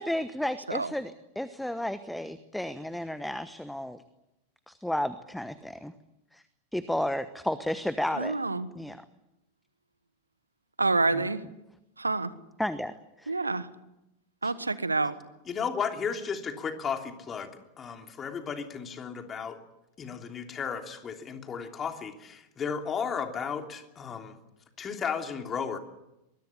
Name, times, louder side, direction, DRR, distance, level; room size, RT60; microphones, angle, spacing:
voice 1, 0.0-4.0 4.7-5.9 6.3-6.4 6.7-8.4 8.7-9.0 11.1-11.3 12.6-13.4 14.4-14.5, left 1 dB, ahead, 14 dB, 1.1 m, -32 dB
voice 2, 8.2-8.7 10.8-11.4 12.0-12.3 13.3-13.7 14.4-15.1, right 3 dB, 80° right, 15 dB, 1.3 m, -27 dB
voice 3, 15.4-19.6 20.0-24.4 24.8-25.8, left 6 dB, 25° left, 5 dB, 3.1 m, -34 dB
23.5 x 22.5 x 8.4 m, 0.91 s
figure-of-eight pair, 90°, 0 cm